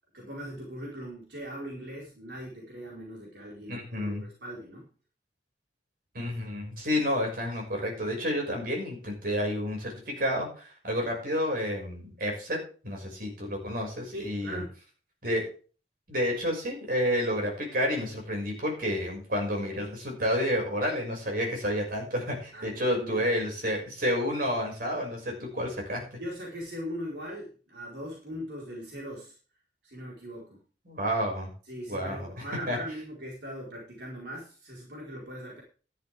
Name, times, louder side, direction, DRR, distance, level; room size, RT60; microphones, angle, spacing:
voice 1, 0.1-4.9 14.1-14.8 22.5-23.3 26.2-29.4 29.8-30.6 31.6-35.6, equal, 80° right, -3 dB, 4.7 m, -40 dB
voice 2, 3.7-4.2 6.1-12.6 12.8-14.6 15.2-15.4 16.1-26.2 30.9-31.5 31.9-32.8, equal, 55° right, 0 dB, 6.4 m, -30 dB
13.5 x 11.5 x 3.6 m, 0.38 s
head